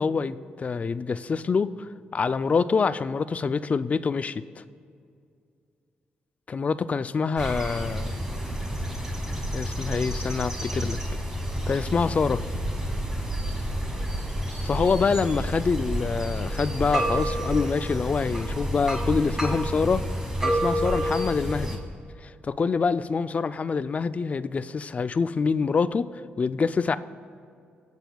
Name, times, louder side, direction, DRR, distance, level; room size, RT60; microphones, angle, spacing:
voice 1, 0.0-4.4 6.5-8.1 9.5-11.0 11.7-12.4 14.6-20.0 20.4-21.8 22.2-26.1 26.4-27.0, left 5 dB, 40° left, 14 dB, 0.4 m, -26 dB
sound 1, 7.4-21.8, equal, 15° right, 1.9 m, -29 dB
19.5 x 8.0 x 2.3 m, 2.3 s
cardioid pair, 75°, 4 cm